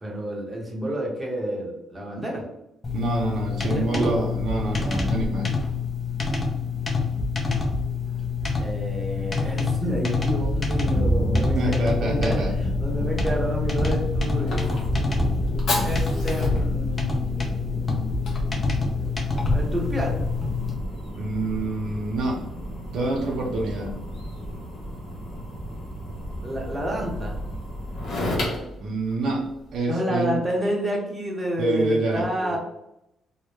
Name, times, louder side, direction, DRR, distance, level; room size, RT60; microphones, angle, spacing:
voice 1, 0.0-2.5 3.6-4.2 8.6-14.8 15.8-18.3 19.4-20.2 23.2-23.4 26.4-27.4 29.8-32.6, equal, 20° right, -1 dB, 0.7 m, -29 dB
sound 1, 2.8-20.7, left 4 dB, 30° left, 0.5 m, -27 dB
voice 2, 2.9-5.5 11.5-12.5 21.2-22.4 22.9-24.0 28.8-29.4 29.7-30.4 31.6-32.6, right 2 dB, 70° right, 0 dB, 0.5 m, -27 dB
sound 2, 10.1-28.1, right 1 dB, 10° left, 1.1 m, -31 dB
Fire, 13.6-29.8, left 1 dB, 65° left, 0.8 m, -34 dB
2.1 x 2.1 x 3.0 m, 0.84 s
cardioid pair, 90°, 0 cm